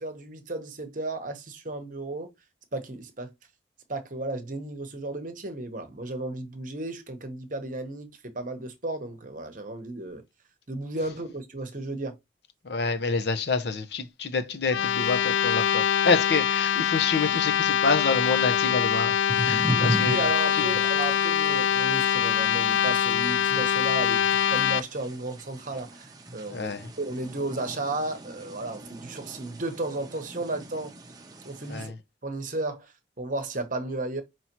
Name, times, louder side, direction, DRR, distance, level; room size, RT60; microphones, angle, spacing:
voice 1, 0.0-2.3 2.7-3.3 3.9-10.2 10.7-12.2 19.7-26.7 27.0-30.9 31.4-31.9 32.2-34.2, right 2 dB, 45° right, 0.9 m, -34 dB
voice 2, 12.6-20.2 20.5-20.7 26.5-26.9 31.7-31.9, left 4 dB, 60° left, 0.7 m, -27 dB
sound 1, 14.6-24.8, left 9 dB, 80° left, 0.3 m, -24 dB
sound 2, 19.3-31.9, right 1 dB, 20° right, 0.7 m, -37 dB
5.6 x 3.0 x 2.9 m
head